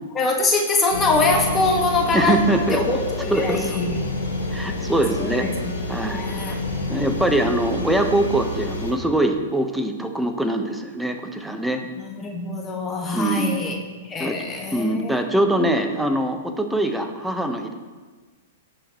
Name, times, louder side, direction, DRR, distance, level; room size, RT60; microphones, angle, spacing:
voice 1, 0.1-4.0 5.1-6.6 12.0-13.8 14.0-15.2, left 3 dB, 20° left, 1 dB, 1.8 m, -24 dB
sound 1, 0.9-8.9, left 2 dB, 80° left, 2.5 m, -29 dB
voice 2, 2.1-2.8 3.3-3.8 4.5-5.5 5.9-6.6 6.9-11.8 13.1-13.6 14.2-14.4 14.7-17.7, right 1 dB, 5° right, 5 dB, 1.2 m, -23 dB
18.0 x 6.4 x 3.2 m, 1.3 s
hypercardioid pair, 110°, 0 cm